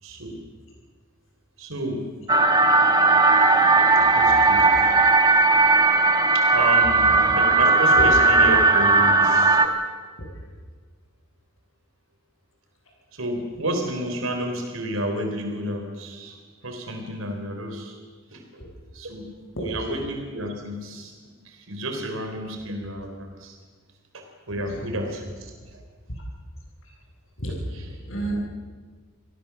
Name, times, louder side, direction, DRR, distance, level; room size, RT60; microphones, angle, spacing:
voice 1, 0.0-0.4 1.6-2.1 4.1-4.7 6.3-9.6 13.1-16.4 16.6-18.0 18.3-18.4 18.9-19.3 19.6-21.1 21.4-23.6 24.1-25.8 27.7-27.8, right 1 dB, 90° right, 4 dB, 4.0 m, -31 dB
sound 1, 2.3-9.7, right 3 dB, 20° right, 1.6 m, -17 dB
voice 2, 19.6-19.9 24.5-24.9 27.4-28.3, right 1 dB, 75° left, -1 dB, 7.6 m, -32 dB
26.5 x 17.5 x 7.2 m, 1.5 s
head